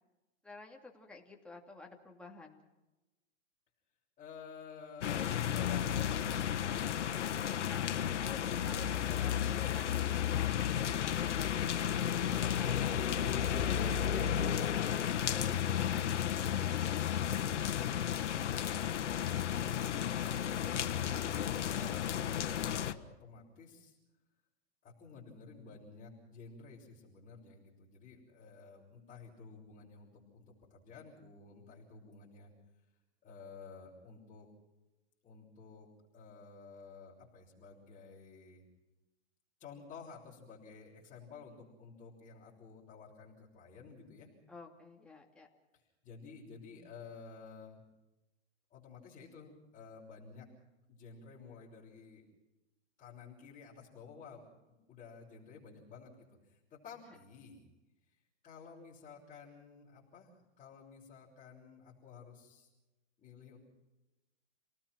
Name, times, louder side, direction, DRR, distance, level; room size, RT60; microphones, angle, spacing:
voice 1, 0.4-2.7 7.4-10.5 10.9-14.6 15.3-16.7 21.7-22.2 44.5-45.5, left 3 dB, 5° left, -1 dB, 2.7 m, -52 dB
voice 2, 4.2-6.3 9.1-10.0 22.7-24.0 24.8-32.5 33.2-34.5 35.2-35.9 36.1-38.6 39.6-44.3 45.7-47.8 48.7-50.5 50.9-52.2 53.0-57.7 58.4-62.7 63.2-63.6, left 5 dB, 20° left, -7 dB, 5.8 m, -53 dB
sound 1, 5.0-22.9, left 9 dB, 90° left, 1.4 m, -33 dB
29.5 x 19.0 x 6.1 m, 1.1 s
hypercardioid pair, 140°, 35 cm